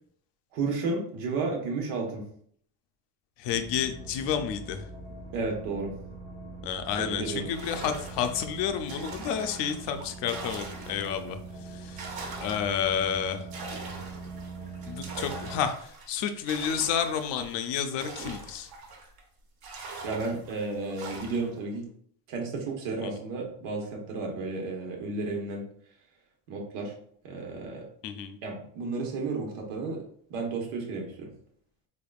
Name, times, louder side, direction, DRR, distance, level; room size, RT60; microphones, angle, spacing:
voice 1, 0.5-2.2 5.3-5.9 7.0-7.5 20.0-21.8 22.3-25.6 26.5-26.9 27.2-27.8 28.4-30.0 30.3-31.3, right 3 dB, 85° right, 0 dB, 1.3 m, -32 dB
voice 2, 3.4-4.9 6.6-11.4 11.6-12.0 12.4-13.5 14.9-18.7 23.0-23.1 28.0-28.4, left 8 dB, 60° left, 8 dB, 0.5 m, -30 dB
sound 1, 3.5-15.6, right 3 dB, 15° right, 0.5 m, -42 dB
sound 2, 7.5-11.3 11.7-19.2 19.6-21.6, right 3 dB, 50° right, 0.9 m, -43 dB
3.8 x 3.4 x 2.3 m, 0.62 s
cardioid pair, 145°, 50 cm